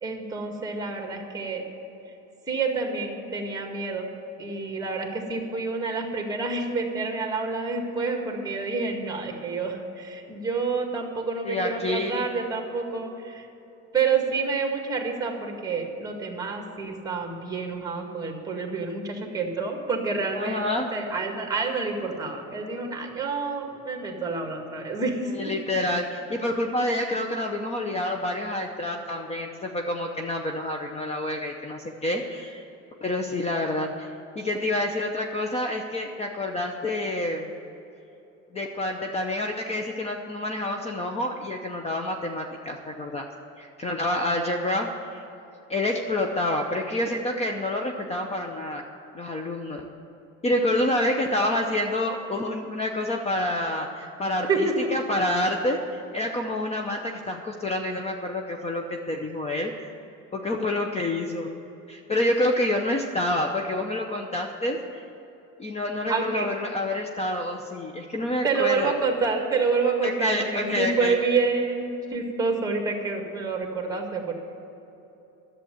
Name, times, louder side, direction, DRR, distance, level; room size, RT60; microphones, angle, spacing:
voice 1, 0.0-1.6 2.5-4.1 4.4-13.5 13.9-20.6 20.9-25.3 54.5-54.9 66.1-66.5 68.4-74.3, right 4 dB, 10° right, 2 dB, 1.9 m, -28 dB
voice 2, 11.4-12.3 20.3-20.9 25.3-32.6 33.0-37.5 38.5-43.3 43.6-45.2 45.7-48.9 49.1-49.9 50.4-59.9 60.3-61.5 61.9-65.0 65.6-68.9 70.0-71.2, left 1 dB, 20° left, 3 dB, 0.8 m, -28 dB
11.0 x 7.7 x 9.2 m, 3.0 s
cardioid pair, 130°, 30 cm